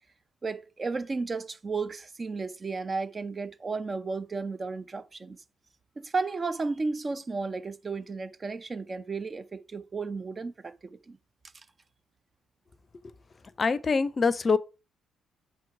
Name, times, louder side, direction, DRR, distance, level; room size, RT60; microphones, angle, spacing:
voice 1, 0.4-5.4 6.0-11.2, right 4 dB, 35° right, 0.6 m, -33 dB
voice 2, 13.6-14.6, left 4 dB, 40° left, 0.6 m, -24 dB
5.7 x 4.6 x 4.7 m
hypercardioid pair, 45°, 0 cm